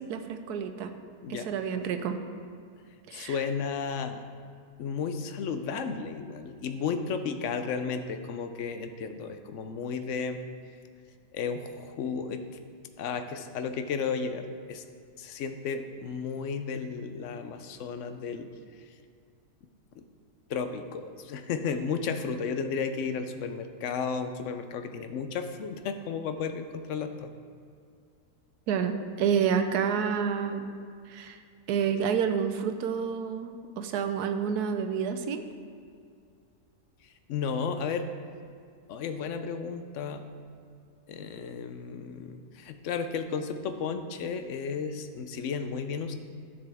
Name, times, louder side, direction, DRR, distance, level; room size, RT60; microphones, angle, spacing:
voice 1, 0.1-0.9 1.3-2.2 3.1-3.4 28.7-30.6 31.1-31.4 31.7-35.5, right 7 dB, 90° right, 8 dB, 1.2 m, -29 dB
voice 2, 3.1-4.3 4.8-10.4 11.3-12.4 13.0-14.8 15.2-18.5 19.9-20.1 20.5-27.3 37.0-38.1 38.9-40.2 41.1-46.1, left 5 dB, 65° left, 8 dB, 0.8 m, -33 dB
11.5 x 6.8 x 3.5 m, 2.3 s
omnidirectional pair, 1.6 m